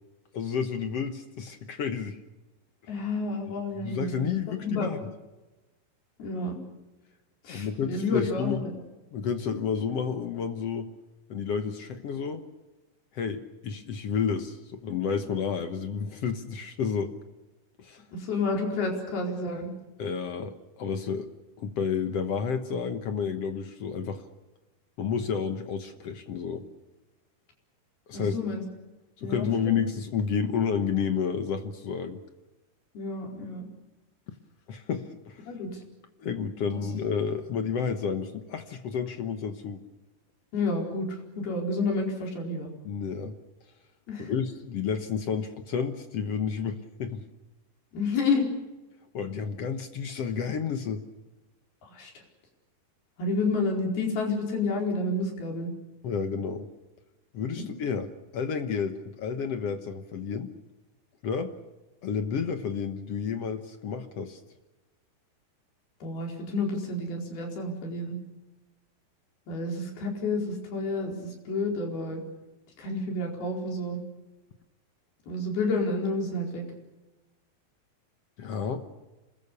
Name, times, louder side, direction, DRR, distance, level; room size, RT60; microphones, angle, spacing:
voice 1, 0.3-2.2 3.8-5.1 7.5-8.8 9.1-10.9 11.3-12.4 13.1-17.1 17.8-18.0 20.0-21.3 21.6-24.2 25.0-26.6 28.1-28.4 29.2-32.2 34.7-35.5 36.2-39.8 42.8-43.3 44.2-47.2 49.1-51.0 56.0-56.7 57.3-60.5 61.2-61.5 62.0-64.4 78.4-78.8, left 6 dB, 60° left, 8 dB, 1.6 m, -31 dB
voice 2, 2.9-4.2 4.5-4.9 6.2-6.6 7.4-8.7 18.1-19.7 28.1-28.6 29.2-29.8 32.9-33.7 35.5-35.7 36.7-36.9 40.5-42.7 44.1-44.3 47.9-48.5 51.8-52.1 53.2-55.7 66.0-68.2 69.5-72.2 72.8-74.0 75.3-76.7, left 3 dB, 90° left, 1 dB, 6.5 m, -30 dB
27.0 x 20.5 x 6.9 m, 1.1 s
omnidirectional pair, 4.3 m